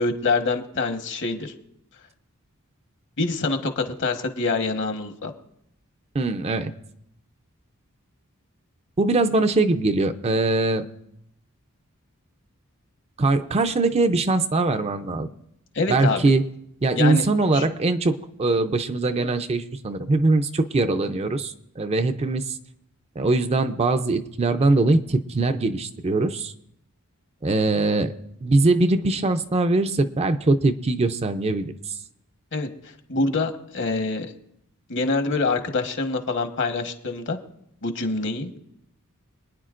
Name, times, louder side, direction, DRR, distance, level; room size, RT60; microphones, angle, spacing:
voice 1, 0.0-1.5 3.2-5.3 15.7-16.3 17.0-17.2 17.5-17.6 32.5-32.7 33.1-34.3 34.9-37.4 37.8-38.6, left 3 dB, 55° left, 6 dB, 1.2 m, -25 dB
voice 2, 6.1-6.7 9.0-10.9 13.2-15.3 15.9-16.4 16.8-22.6 23.2-26.5 27.4-28.1 28.4-31.7, right 2 dB, 30° right, 9 dB, 0.5 m, -22 dB
26.0 x 9.7 x 2.5 m, 0.77 s
head